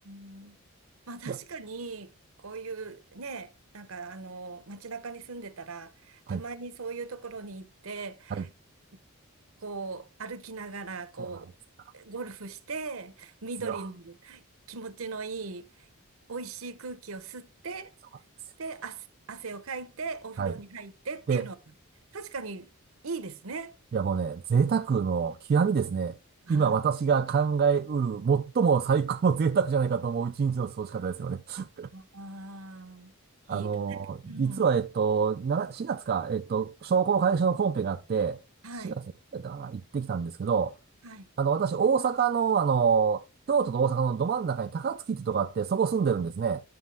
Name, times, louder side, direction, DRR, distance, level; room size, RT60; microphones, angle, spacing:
voice 1, 0.0-0.6 1.1-2.1 2.4-8.5 9.6-11.5 11.9-14.4 14.7-15.9 16.3-17.9 18.6-21.6 22.1-22.7 23.0-23.7 26.5-26.8 31.9-33.1 33.5-34.0 34.2-34.7 38.6-39.0 41.0-41.3 46.2-46.3, right 4 dB, 70° right, 0.8 m, -39 dB
voice 2, 23.9-26.2 26.5-31.9 33.5-38.4 38.8-38.9 39.3-40.7 41.4-43.2 43.5-46.6, right 6 dB, 45° right, 0.3 m, -26 dB
9.5 x 6.2 x 3.3 m
head